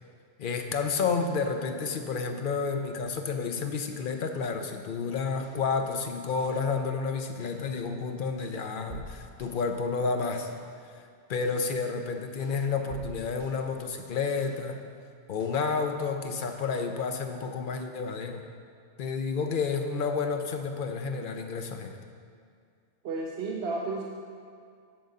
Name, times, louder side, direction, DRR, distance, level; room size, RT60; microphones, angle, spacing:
voice 1, 0.4-10.5 10.9-11.0 11.3-14.8 15.3-18.4 19.0-22.0, left 5 dB, 55° left, 5 dB, 0.7 m, -30 dB
sound 1, 5.4-5.7 6.4-6.7 7.4-7.7 8.4-9.7 10.4-10.7 11.4-11.7 12.4-13.7 14.4-14.7 15.4-15.7 16.4-16.7, right 1 dB, 85° right, 1.3 m, -48 dB
voice 2, 23.0-24.0, right 3 dB, 65° right, -1 dB, 0.9 m, -32 dB
8.9 x 3.9 x 6.5 m, 2.3 s
omnidirectional pair, 1.2 m